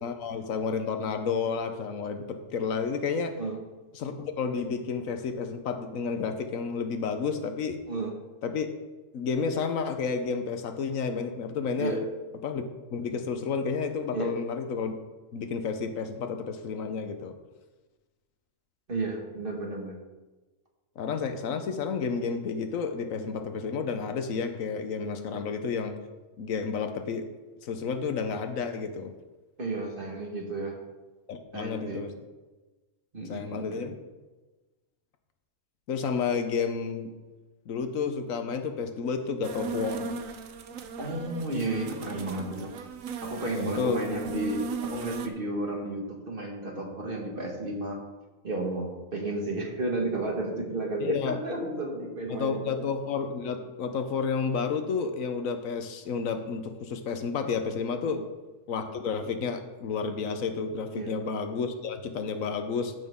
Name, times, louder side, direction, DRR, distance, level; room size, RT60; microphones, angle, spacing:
voice 1, 0.0-3.4 3.9-7.8 8.4-8.7 9.1-11.9 12.4-12.6 12.9-14.9 15.3-17.4 21.0-26.0 26.4-27.3 27.6-29.1 31.3-32.1 33.3-34.0 35.9-37.1 37.7-40.1 43.6-44.0 51.0-51.4 52.3-58.2 58.7-62.9, left 5 dB, 90° left, 7 dB, 1.3 m, -31 dB
voice 2, 18.9-20.0 25.3-25.4 29.6-30.8 31.5-32.0 33.1-33.9 41.0-42.7 43.2-48.0 48.4-52.8 58.1-58.2 60.9-61.1, right 2 dB, 45° right, 0 dB, 1.9 m, -32 dB
sound 1, 39.4-45.3, right 4 dB, 85° right, 1.1 m, -37 dB
14.5 x 6.3 x 3.7 m, 1.2 s
omnidirectional pair, 1.4 m